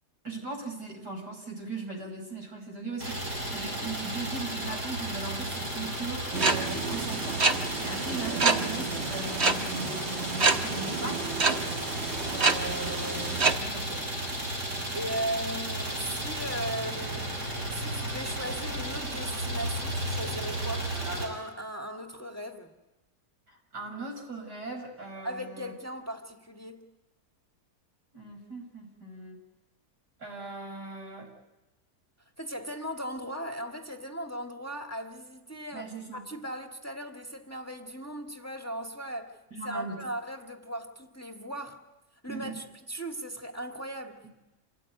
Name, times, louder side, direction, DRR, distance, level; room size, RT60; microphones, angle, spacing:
voice 1, 0.2-3.2 3.5-11.7 12.2-14.0 23.5-25.7 28.1-29.4 30.2-31.3 35.7-36.2 39.5-40.0 42.3-42.6, right 3 dB, 90° right, 6.1 m, -39 dB
Idling, 3.0-21.3, right 1 dB, 70° right, 7.4 m, -34 dB
sound 1, 6.3-13.6, right 4 dB, 45° right, 1.6 m, -28 dB
voice 2, 14.9-22.7 25.2-26.9 32.4-39.4 39.6-41.8 42.2-44.3, right 1 dB, 10° left, 1.7 m, -38 dB
26.5 x 18.0 x 9.4 m
omnidirectional pair, 1.7 m